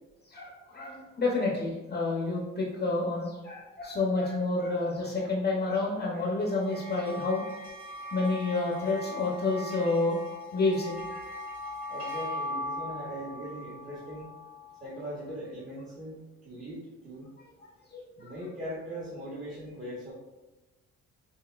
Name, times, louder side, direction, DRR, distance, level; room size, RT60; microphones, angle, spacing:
voice 1, 0.3-7.4 8.1-10.2 10.5-11.3 17.9-18.3, left 3 dB, 35° left, -3 dB, 0.8 m, -29 dB
sound 1, 6.4-15.0, left 2 dB, 40° right, 1.2 m, -39 dB
voice 2, 11.9-14.3 14.8-17.3 18.2-20.1, equal, 25° right, -8 dB, 1.3 m, -40 dB
5.8 x 2.7 x 2.4 m, 1.1 s
cardioid pair, 90°, 30 cm